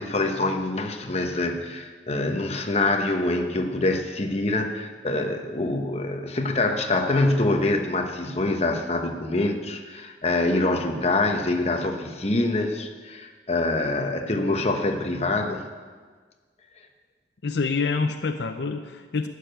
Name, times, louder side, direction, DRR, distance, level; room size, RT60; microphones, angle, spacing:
voice 1, 0.0-15.6, left 2 dB, 35° left, 5 dB, 1.0 m, -25 dB
voice 2, 17.4-19.3, left 4 dB, 75° left, 7 dB, 0.6 m, -26 dB
12.0 x 6.7 x 9.1 m, 1.5 s
head